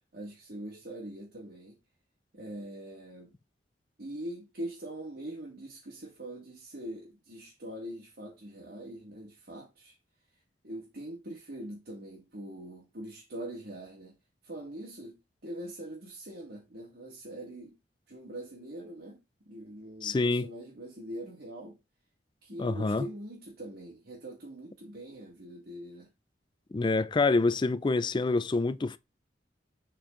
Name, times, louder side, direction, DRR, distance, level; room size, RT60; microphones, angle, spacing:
voice 1, 0.1-1.8 2.3-3.3 4.0-9.9 10.6-14.2 14.4-17.8 18.1-21.8 22.4-26.1, right 1 dB, 60° right, 2.1 m, -43 dB
voice 2, 20.0-20.5 22.6-23.0 26.7-29.0, left 3 dB, 25° left, 0.4 m, -26 dB
7.3 x 4.3 x 3.8 m
head